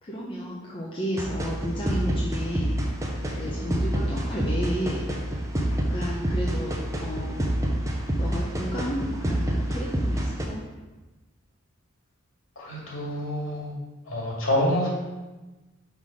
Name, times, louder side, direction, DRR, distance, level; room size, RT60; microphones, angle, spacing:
voice 1, 0.0-2.8 3.3-5.3 5.7-7.5 8.1-10.6, equal, 25° left, -5 dB, 0.7 m, -32 dB
sound 1, 1.2-10.4, right 1 dB, 15° right, 0.7 m, -27 dB
voice 2, 12.6-13.7 14.0-14.9, left 1 dB, 75° left, -4 dB, 2.1 m, -27 dB
5.6 x 4.0 x 4.9 m, 1.2 s
head